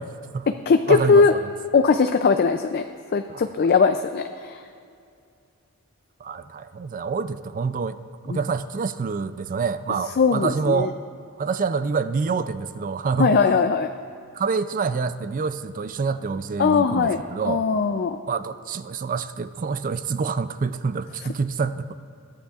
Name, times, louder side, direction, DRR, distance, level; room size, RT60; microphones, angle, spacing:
voice 1, 0.0-0.5 0.9-1.2 3.3-3.4 6.2-8.0 8.3-11.0 11.4-13.5 14.3-17.6 18.3-21.9, right 5 dB, 35° right, 12 dB, 0.4 m, -27 dB
voice 2, 0.7-1.3 1.7-2.8 3.1-4.6 8.3-8.4 10.2-10.9 13.2-13.9 16.6-18.2, left 5 dB, 45° left, 8 dB, 0.4 m, -20 dB
21.5 x 11.5 x 2.4 m, 2.4 s
head